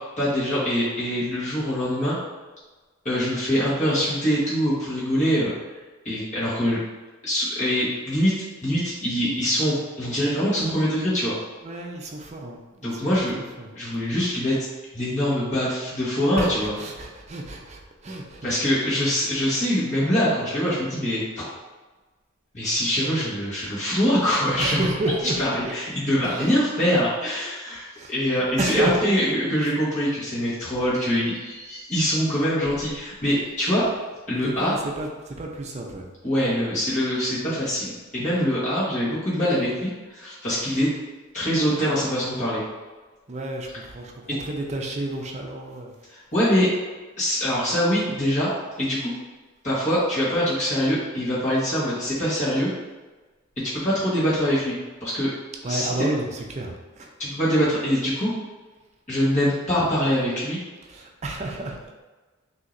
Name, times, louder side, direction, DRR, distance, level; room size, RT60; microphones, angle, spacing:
voice 1, 0.2-2.2 3.0-5.5 6.0-6.8 7.2-11.3 12.8-13.4 13.7-14.6 14.9-16.7 18.4-21.5 22.5-24.8 25.4-33.8 34.3-34.7 36.2-40.9 41.3-42.6 46.1-46.7 47.2-48.5 48.8-49.1 49.6-52.7 53.8-55.3 55.7-55.9 57.2-58.3 59.1-60.6, equal, 35° left, -9 dB, 1.4 m, -24 dB
voice 2, 11.6-13.7 16.4-18.6 18.9-19.1 24.6-25.7 26.2-26.5 28.0-28.1 28.6-29.1 30.7-30.9 34.3-36.1 43.3-45.9 55.6-57.1 60.8-61.9, right 2 dB, 35° right, 1 dB, 0.5 m, -31 dB
6.2 x 2.8 x 2.6 m, 1.2 s
head